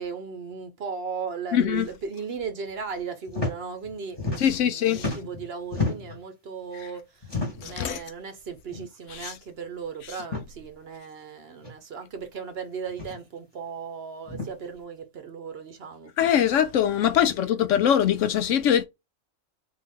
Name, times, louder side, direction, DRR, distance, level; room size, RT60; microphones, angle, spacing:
voice 1, 0.0-16.1 17.1-17.6, right 5 dB, 55° right, 0.9 m, -37 dB
voice 2, 1.5-1.9 4.4-5.1 7.6-8.0 9.1-9.3 16.2-18.8, left 9 dB, 70° left, 0.9 m, -22 dB
sound 1, 3.3-3.5 3.8-4.7 4.9-6.2 7.2-7.8 8.7-8.9 9.2-9.3 10.2-10.5 11.6-11.7 12.9-13.2 14.2-14.5, left 3 dB, 20° left, 1.2 m, -31 dB
3.9 x 2.7 x 3.5 m
omnidirectional pair, 1.4 m